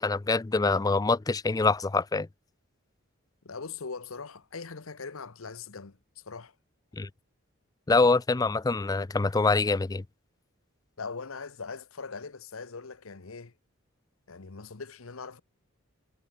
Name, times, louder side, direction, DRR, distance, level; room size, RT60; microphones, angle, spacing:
voice 1, 0.0-2.3 6.9-7.1 7.9-10.0, left 3 dB, 15° left, 0.4 m, -25 dB
voice 2, 3.4-6.0 6.2-6.5 11.0-13.5 14.3-15.4, left 4 dB, 75° left, 1.1 m, -41 dB
head